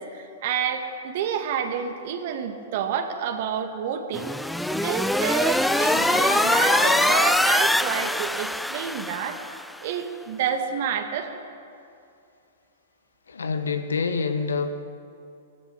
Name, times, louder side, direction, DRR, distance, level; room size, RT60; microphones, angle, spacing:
voice 1, 0.0-4.3 4.7-9.4 9.8-11.4, right 8 dB, 55° right, 5 dB, 2.3 m, -29 dB
sound 1, 4.1-9.7, left 1 dB, 5° left, 0.5 m, -23 dB
sound 2, 5.3-7.5, left 6 dB, 55° left, 2.9 m, -30 dB
voice 2, 13.3-14.8, left 4 dB, 80° left, 8 dB, 1.6 m, -27 dB
21.0 x 14.5 x 9.0 m, 2.5 s
figure-of-eight pair, 110°, 0 cm